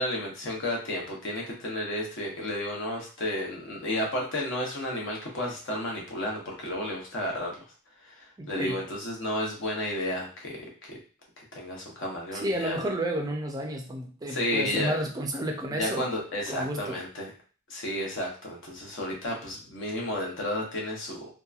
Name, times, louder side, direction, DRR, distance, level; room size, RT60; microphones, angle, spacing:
voice 1, 0.0-7.5 8.0-10.9 11.4-12.9 14.3-14.9 15.8-17.3 17.7-21.3, left 1 dB, 60° left, -1 dB, 0.9 m, -32 dB
voice 2, 8.4-8.8 12.3-16.1 16.5-17.0, right 1 dB, 20° right, 2 dB, 0.4 m, -31 dB
2.8 x 2.2 x 2.4 m, 0.38 s
head